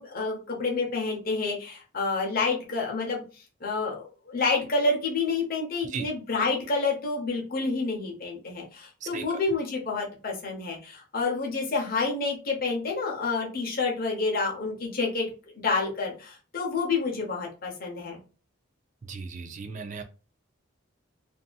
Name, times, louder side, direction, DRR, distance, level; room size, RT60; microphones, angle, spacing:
voice 1, 0.0-3.2 3.6-15.3 15.6-18.2, left 3 dB, 45° left, 0.8 m, -28 dB
voice 2, 9.0-9.4 19.0-20.0, right 4 dB, 35° right, 0.3 m, -36 dB
2.7 x 2.5 x 2.3 m
head